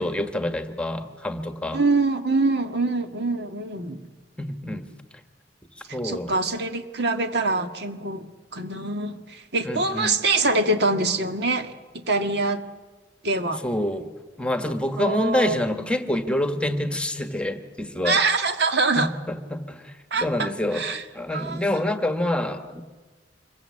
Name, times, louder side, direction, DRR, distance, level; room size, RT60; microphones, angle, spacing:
voice 1, 0.0-1.8 4.4-4.9 5.8-6.4 9.6-10.2 13.6-14.1 14.4-18.2 19.0-22.8, left 1 dB, 5° left, 7 dB, 1.5 m, -27 dB
voice 2, 1.7-4.1 5.9-12.6 13.2-13.6 15.0-15.6 18.0-19.1 20.1-21.0 21.3-21.6, right 3 dB, 65° right, 7 dB, 1.9 m, -24 dB
26.5 x 23.0 x 8.6 m, 1.3 s
head